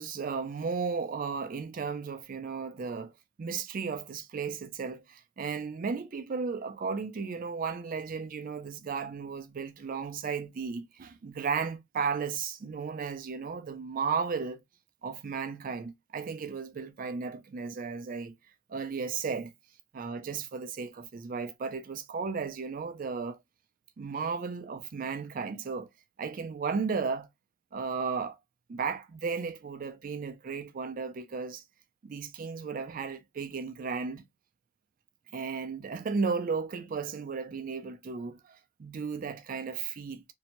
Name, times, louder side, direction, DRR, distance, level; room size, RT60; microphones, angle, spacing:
voice 1, 0.0-3.1 3.4-14.6 15.0-18.3 18.7-19.5 19.9-23.4 24.0-25.9 26.2-27.3 27.7-28.4 28.7-31.6 32.0-34.2 35.3-40.2, right 5 dB, 40° right, 0.3 m, -34 dB
2.6 x 2.1 x 2.8 m
head